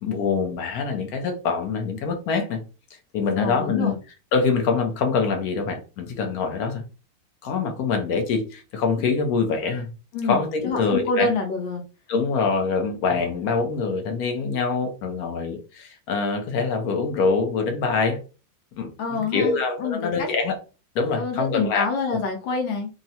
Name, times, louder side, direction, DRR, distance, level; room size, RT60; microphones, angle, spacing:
voice 1, 0.0-2.6 3.1-3.9 4.3-6.8 7.4-9.9 10.3-11.3 12.1-18.2 18.8-20.6 20.9-22.2, left 4 dB, 70° left, 0.9 m, -24 dB
voice 2, 3.4-4.0 10.1-11.8 19.0-20.3 21.1-22.9, left 4 dB, 85° left, 1.4 m, -27 dB
3.6 x 2.1 x 2.7 m
omnidirectional pair, 2.0 m